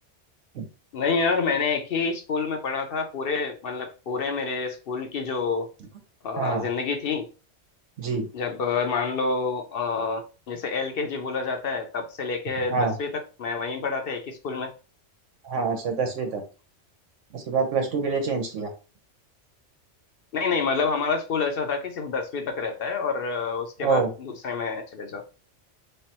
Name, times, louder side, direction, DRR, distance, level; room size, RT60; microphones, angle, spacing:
voice 1, 0.9-5.7 6.2-7.3 8.3-14.7 20.3-25.2, left 4 dB, 60° left, 0.7 m, -28 dB
voice 2, 6.4-6.7 8.0-8.3 12.7-12.9 15.4-16.4 17.3-18.7 23.8-24.1, right 5 dB, 85° right, 1.3 m, -26 dB
3.4 x 3.2 x 2.9 m
omnidirectional pair, 1.2 m